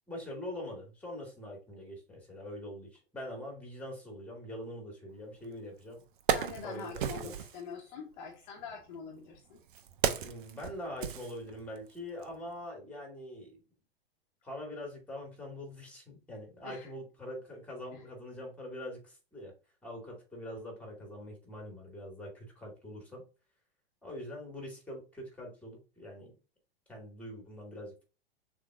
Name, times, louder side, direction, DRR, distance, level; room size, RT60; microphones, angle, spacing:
voice 1, 0.1-6.0 6.6-7.4 10.2-13.6 14.4-19.5 19.8-23.2 24.0-26.3 26.9-28.0, left 1 dB, 5° left, 0 dB, 2.3 m, -43 dB
Wood, 5.4-5.5 6.0-7.6 8.6-11.9 12.2-12.4, right 9 dB, 55° right, 0.7 m, -34 dB
voice 2, 6.3-9.6 16.6-16.9 17.9-18.0, left 5 dB, 45° left, 1 dB, 1.2 m, -45 dB
6.5 x 3.1 x 2.5 m, 0.32 s
figure-of-eight pair, 95°, 30 cm